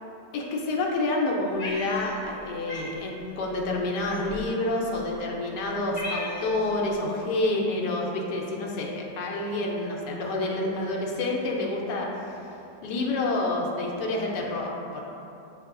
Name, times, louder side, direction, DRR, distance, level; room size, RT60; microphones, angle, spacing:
voice 1, 0.3-12.4 12.8-15.0, left 2 dB, 75° left, -2 dB, 1.2 m, -28 dB
Cat, 1.6-2.4 2.7-2.9 4.0-4.5 5.2-5.3 5.6-6.6, left 1 dB, 35° left, 1.0 m, -36 dB
7.8 x 2.7 x 2.5 m, 2.8 s
omnidirectional pair, 1.8 m